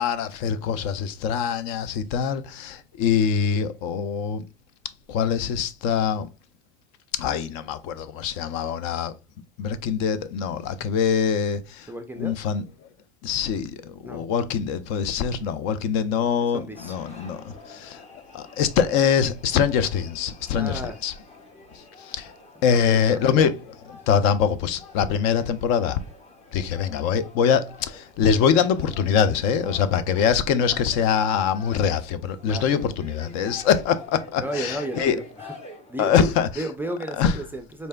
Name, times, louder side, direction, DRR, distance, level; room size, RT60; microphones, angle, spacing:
voice 1, 0.0-4.4 5.1-6.3 7.1-9.1 9.6-11.9 12.2-12.6 13.2-18.0 18.3-21.1 21.7-22.3 22.6-26.0 26.5-35.2 36.0-36.6 37.2-37.4, left 7 dB, 55° left, 0.5 m, -24 dB
voice 2, 11.9-12.5 14.1-14.2 16.5-16.9 20.5-21.0 22.6-23.5 32.5-32.9 34.4-35.2 35.9-37.9, right 1 dB, 5° right, 0.4 m, -33 dB
sound 1, 16.7-36.3, left 3 dB, 20° left, 0.9 m, -47 dB
4.1 x 3.2 x 2.2 m
hypercardioid pair, 100°, 32 cm